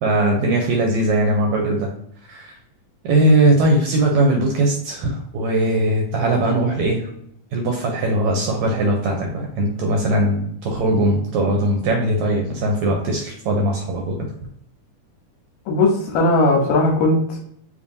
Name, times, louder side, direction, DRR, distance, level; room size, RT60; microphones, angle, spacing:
voice 1, 0.0-1.9 2.3-2.5 3.0-7.1 7.5-14.2, right 1 dB, 75° right, 1 dB, 1.7 m, -20 dB
voice 2, 15.7-17.4, left 2 dB, 75° left, -1 dB, 1.9 m, -18 dB
5.2 x 2.8 x 2.6 m, 0.68 s
omnidirectional pair, 3.8 m